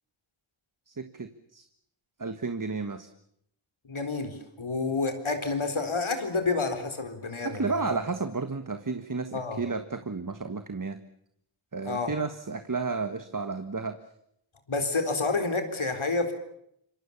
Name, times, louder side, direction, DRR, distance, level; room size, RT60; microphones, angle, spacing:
voice 1, 0.9-1.6 2.2-3.1 7.4-11.0 11.7-14.0, right 4 dB, 40° right, 9 dB, 1.6 m, -32 dB
voice 2, 3.9-8.0 9.3-9.6 11.8-12.1 14.7-16.3, left 3 dB, 75° left, 7 dB, 4.2 m, -29 dB
27.0 x 23.5 x 7.3 m, 0.75 s
wide cardioid pair, 55°, 49 cm